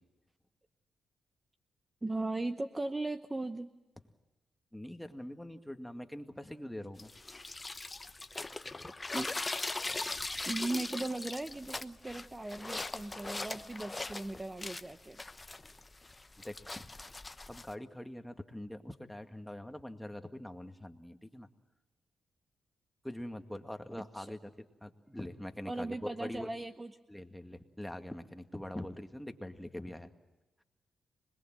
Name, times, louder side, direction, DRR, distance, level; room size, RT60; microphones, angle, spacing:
voice 1, 2.0-3.7 9.1-9.3 10.5-15.2 24.0-24.3 25.7-26.9, right 2 dB, 20° right, 9 dB, 0.9 m, -38 dB
voice 2, 4.7-7.1 9.8-10.3 16.4-16.9 17.5-21.5 23.0-26.5 27.1-30.1, left 1 dB, 5° left, 6 dB, 2.0 m, -44 dB
sound 1, 7.0-17.7, left 2 dB, 25° left, 0.9 m, -40 dB
26.0 x 21.0 x 7.7 m, 1.1 s
cardioid pair, 65°, 0 cm